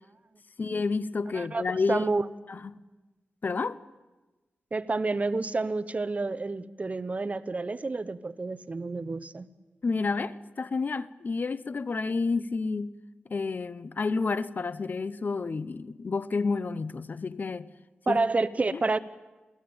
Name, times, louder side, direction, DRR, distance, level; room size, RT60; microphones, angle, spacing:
voice 1, 0.6-2.1 2.5-2.6 3.4-3.8 9.8-12.9 13.3-17.7 18.1-18.2 18.7-18.8, left 4 dB, 50° left, 0.8 m, -30 dB
voice 2, 1.3-2.3 4.7-9.5 18.1-19.0, right 3 dB, 40° right, 1.0 m, -29 dB
28.0 x 17.5 x 8.8 m
wide cardioid pair, 80°, 4 cm